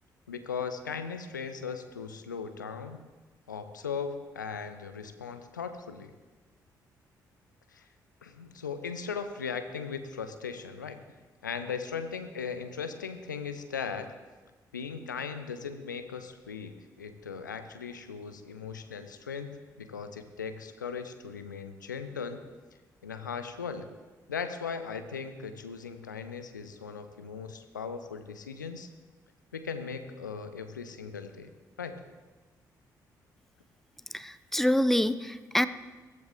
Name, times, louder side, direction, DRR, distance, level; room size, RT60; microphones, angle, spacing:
voice 1, 0.3-3.0 3.5-6.1 7.7-7.9 8.2-11.0 11.4-14.1 14.7-22.4 23.0-23.9 24.3-28.9 29.5-31.5 31.8-32.0, left 6 dB, 85° left, 9 dB, 0.7 m, -38 dB
voice 2, 34.1-35.7, left 1 dB, 5° left, 14 dB, 0.6 m, -26 dB
15.5 x 14.5 x 3.7 m, 1.3 s
figure-of-eight pair, 40°, 10 cm